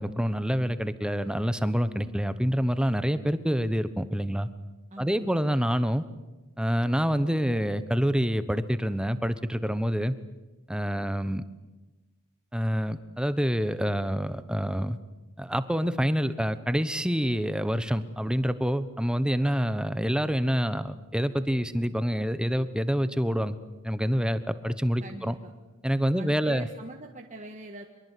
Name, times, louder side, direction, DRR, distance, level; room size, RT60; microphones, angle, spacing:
voice 1, 0.0-4.5 5.0-6.0 6.6-10.1 10.7-11.4 12.5-15.0 15.4-23.6 23.8-25.3 25.8-26.7, equal, 5° right, 12 dB, 1.0 m, -27 dB
voice 2, 4.9-5.6 25.0-25.5 26.1-27.9, right 1 dB, 35° right, 2 dB, 1.7 m, -43 dB
24.5 x 22.5 x 8.4 m, 1.1 s
head